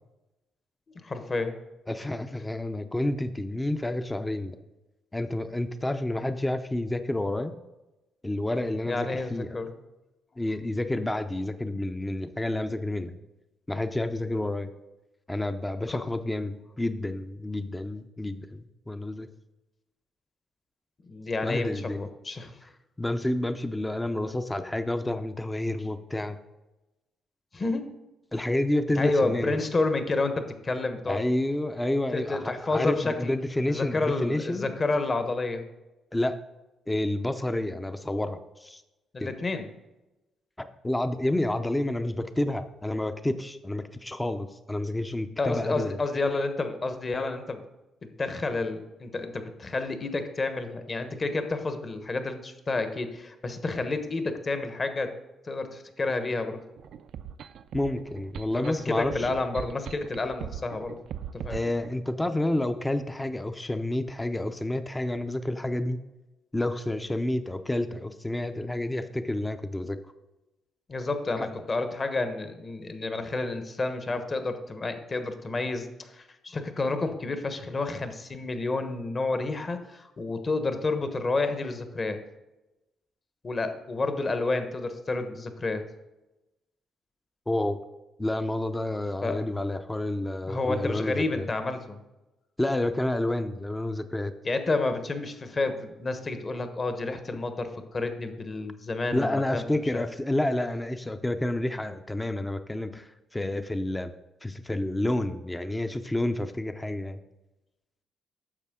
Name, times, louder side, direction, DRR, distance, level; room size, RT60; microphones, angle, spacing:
voice 1, 1.0-1.6 8.9-9.7 15.9-16.0 21.1-22.6 27.5-27.9 29.0-31.2 32.1-33.3 33.7-35.6 39.1-39.7 45.4-47.6 48.0-55.1 55.5-56.6 58.5-61.0 61.4-61.6 70.9-82.2 83.4-85.8 89.2-89.4 90.5-92.0 94.4-99.6 99.9-100.0, left 3 dB, 35° left, 8 dB, 1.1 m, -30 dB
voice 2, 1.9-4.6 5.1-7.5 8.2-9.5 10.4-13.2 13.7-14.7 15.3-19.3 21.4-22.1 23.0-26.4 28.3-29.6 31.1-34.7 36.1-36.4 36.9-38.8 39.2-39.3 40.6-46.0 57.7-59.3 61.5-66.0 66.5-70.0 71.4-71.5 87.5-87.8 88.2-91.5 92.6-94.3 99.1-104.1 104.4-107.2, left 1 dB, 10° left, 9 dB, 0.6 m, -29 dB
sound 1, 56.8-61.9, right 9 dB, 70° right, 0.4 m, -40 dB
9.9 x 6.8 x 3.7 m, 1.0 s
cardioid pair, 90°, 0 cm